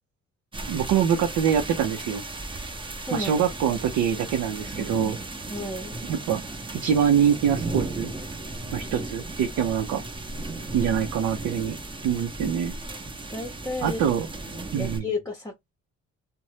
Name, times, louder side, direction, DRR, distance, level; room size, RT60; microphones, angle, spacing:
sound 1, 0.5-15.0, right 2 dB, 15° right, 0.8 m, -35 dB
voice 1, 0.7-2.2 3.1-5.2 6.0-6.4 6.7-8.1 8.7-10.0 10.7-11.8 12.0-12.7 13.8-14.3 14.7-15.1, right 8 dB, 75° right, 0.7 m, -24 dB
voice 2, 3.0-3.3 5.5-6.0 13.3-14.0 14.5-15.7, left 2 dB, 10° left, 0.8 m, -32 dB
2.6 x 2.2 x 3.2 m
cardioid pair, 90°, 30 cm